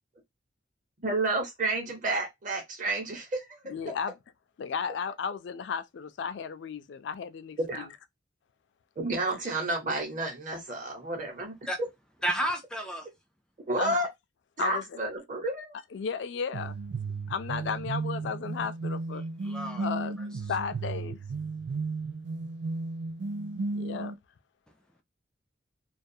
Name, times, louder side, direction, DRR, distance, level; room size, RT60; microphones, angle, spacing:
voice 1, 1.0-3.6 7.6-7.8 9.0-11.5 13.7-14.1 14.6-15.7, right 2 dB, 45° right, 0.9 m, -30 dB
voice 2, 3.6-4.2 4.6-8.0 9.3-9.4 13.7-14.1 14.6-15.0 15.9-16.8 17.3-19.2 19.8-20.2 20.5-21.3 23.7-24.1, left 6 dB, 75° left, 0.3 m, -34 dB
voice 3, 12.2-13.1 19.4-19.9, right 1 dB, 5° left, 0.4 m, -31 dB
sound 1, 16.5-24.1, right 3 dB, 70° right, 0.4 m, -34 dB
2.3 x 2.3 x 2.6 m
head